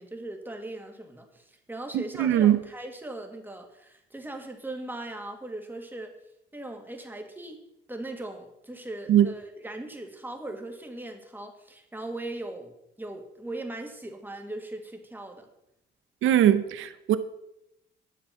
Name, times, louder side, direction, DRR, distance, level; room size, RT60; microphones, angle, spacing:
voice 1, 0.0-6.1 6.5-7.6 7.9-15.5, right 2 dB, 10° right, 2.0 m, -39 dB
voice 2, 1.9-2.6 9.1-9.3 16.2-17.2, right 11 dB, 80° right, 0.9 m, -21 dB
10.5 x 7.2 x 5.8 m
cardioid pair, 90°, 20 cm